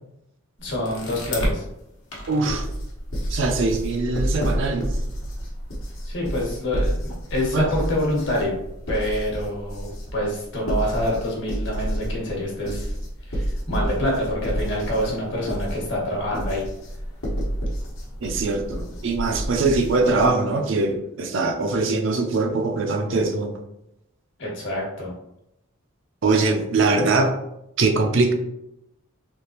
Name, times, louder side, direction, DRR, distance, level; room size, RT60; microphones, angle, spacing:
sound 1, 0.6-1.6 2.1-20.3, equal, 75° left, 1.0 m, -30 dB
voice 1, 0.6-1.6 6.0-8.6 8.9-12.9 13.3-16.6 24.4-25.1, left 1 dB, 55° left, -2 dB, 1.2 m, -26 dB
voice 2, 2.3-2.7 3.3-4.9 7.5-7.7 18.2-23.5 26.2-27.3 27.8-28.3, right 3 dB, 60° right, 4 dB, 0.5 m, -22 dB
3.5 x 2.8 x 2.8 m, 0.84 s
head